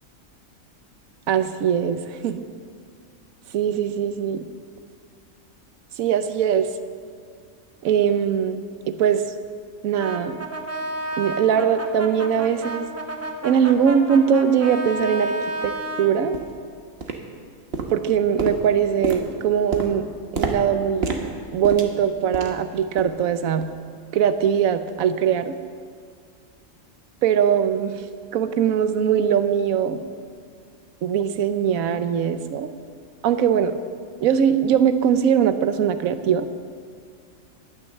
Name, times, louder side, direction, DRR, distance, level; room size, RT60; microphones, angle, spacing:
voice 1, 1.3-2.5 3.5-4.5 6.0-6.7 7.8-8.6 8.9-9.2 9.8-10.4 11.2-12.9 13.4-15.4 15.6-16.4 17.9-20.1 20.3-23.7 24.1-25.5 27.2-28.0 28.3-30.0 31.0-32.7 33.2-33.8 34.2-36.5, right 8 dB, 80° right, 11 dB, 1.2 m, -21 dB
Brass instrument, 10.0-16.2, right 1 dB, 15° right, 0.9 m, -31 dB
sound 1, 14.3-14.4 15.0-15.1 15.6-15.8 16.3-16.6 17.0-17.5 17.7-22.7 23.0-23.3 23.6-23.8 24.3-24.4, right 3 dB, 50° right, 1.3 m, -30 dB
11.5 x 9.6 x 7.4 m, 2.1 s
omnidirectional pair, 1.4 m